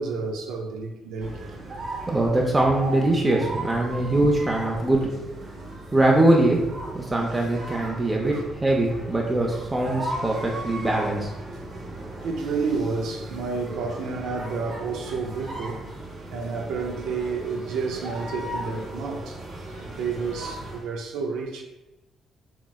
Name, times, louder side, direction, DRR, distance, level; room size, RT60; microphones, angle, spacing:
voice 1, 0.0-1.6 2.0-2.1 8.3-8.4 12.2-15.9 16.3-19.4 19.8-21.6, right 4 dB, 90° right, 0.3 m, -30 dB
sound 1, 1.2-20.9, right 1 dB, 50° right, 0.8 m, -37 dB
voice 2, 2.1-5.0 5.9-6.6 6.9-11.6, right 1 dB, 20° right, 0.4 m, -22 dB
3.7 x 2.1 x 2.3 m
cardioid pair, 90°, 0 cm